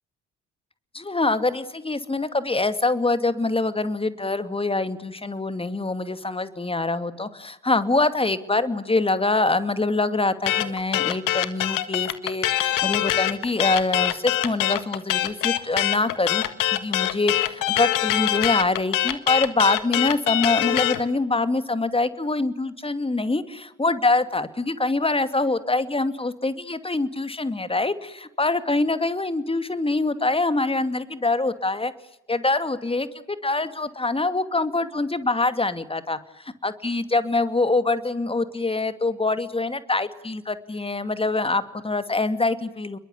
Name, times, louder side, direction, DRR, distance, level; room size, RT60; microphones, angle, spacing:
voice 1, 0.9-16.4 16.7-31.9 32.3-33.1 33.4-43.0, left 2 dB, 15° left, 11 dB, 2.4 m, -24 dB
sound 1, 10.5-21.0, left 14 dB, 60° left, 1.7 m, -23 dB
29.5 x 22.0 x 8.4 m, 0.84 s
figure-of-eight pair, 40°, 36 cm